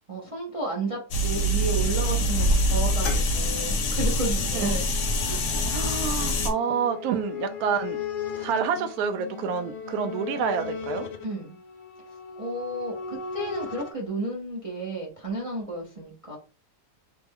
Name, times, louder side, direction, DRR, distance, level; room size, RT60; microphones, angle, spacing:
voice 1, 0.1-4.8 5.2-5.4 11.2-11.6 12.4-16.4, right 2 dB, 45° right, 0.4 m, -32 dB
sound 1, 1.1-6.5, equal, 60° left, 0.9 m, -24 dB
sound 2, 3.3-13.9, left 7 dB, 80° left, 1.3 m, -38 dB
voice 2, 4.5-4.8 5.7-8.0 8.4-11.1, right 7 dB, 70° right, 1.0 m, -28 dB
3.3 x 2.1 x 3.4 m
omnidirectional pair, 1.8 m